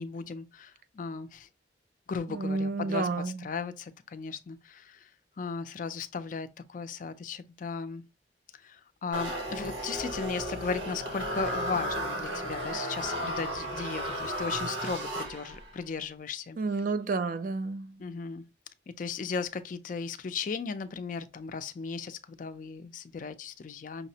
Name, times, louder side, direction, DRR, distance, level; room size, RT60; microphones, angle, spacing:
voice 1, 0.0-1.5 2.1-5.1 5.4-8.0 8.5-16.6 18.0-18.4 18.9-24.1, left 5 dB, 45° left, 0.4 m, -36 dB
voice 2, 2.3-3.5 16.6-18.0, right 3 dB, 45° right, 0.4 m, -30 dB
sound 1, 9.1-15.7, equal, 85° right, 1.0 m, -34 dB
5.6 x 2.0 x 2.7 m
head